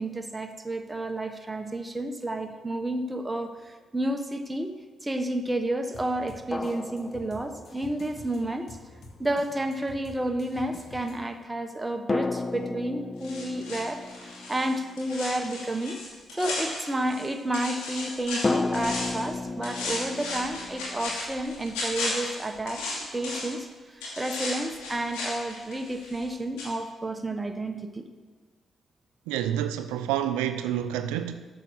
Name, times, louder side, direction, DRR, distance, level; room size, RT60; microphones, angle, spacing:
voice 1, 0.0-4.7 5.0-8.8 9.2-16.0 16.4-22.8 23.1-23.7 23.9-28.1, right 1 dB, 20° right, 1.1 m, -31 dB
sound 1, 2.9-3.0 6.5-8.0 12.1-15.7 18.4-21.2, left 3 dB, 30° left, 0.5 m, -33 dB
sound 2, 5.9-11.4, left 2 dB, 55° left, 1.5 m, -48 dB
sound 3, 13.2-17.3 17.5-19.3 19.6-23.6 24.0-26.3 26.6-26.7, left 2 dB, 85° left, 2.4 m, -35 dB
voice 2, 29.3-31.5, right 10 dB, 90° right, 0.4 m, -28 dB
8.2 x 7.0 x 6.3 m
hypercardioid pair, 50°, 0 cm